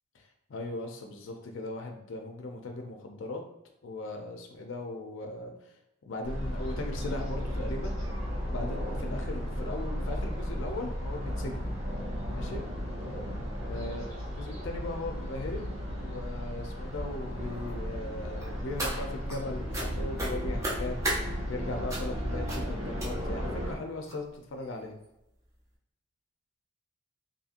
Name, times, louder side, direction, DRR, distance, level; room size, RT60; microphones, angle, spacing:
voice 1, 0.5-3.4 3.8-5.7 6.0-8.0 8.5-11.7 12.3-12.6 13.7-21.0 21.5-24.9, left 2 dB, 70° left, 3 dB, 0.4 m, -38 dB
sound 1, 6.2-23.7, equal, 75° right, 1.2 m, -34 dB
sound 2, 18.4-19.4 19.7-19.9 20.2-21.2 21.9-22.2 22.5-22.7 23.0-23.4 24.1-24.2 24.6-24.7 25.0-25.1, right 1 dB, 15° right, 0.5 m, -34 dB
2.8 x 2.6 x 2.5 m, 0.86 s
head